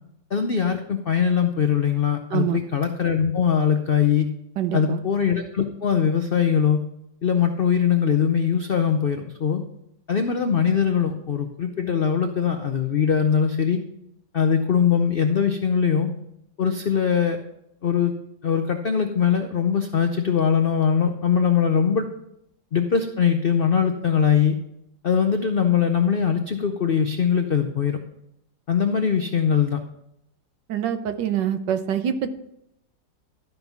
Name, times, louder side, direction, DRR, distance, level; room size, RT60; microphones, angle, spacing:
voice 1, 0.3-4.3 4.7-6.8 7.2-9.6 10.1-13.8 14.3-16.1 16.6-17.4 17.8-18.1 18.4-22.1 22.7-24.6 25.0-28.0 28.7-29.8, left 7 dB, 75° left, 6 dB, 0.5 m, -21 dB
voice 2, 4.6-5.0 30.7-32.3, right 9 dB, 80° right, 9 dB, 1.5 m, -25 dB
12.5 x 5.4 x 5.9 m, 0.79 s
omnidirectional pair, 1.9 m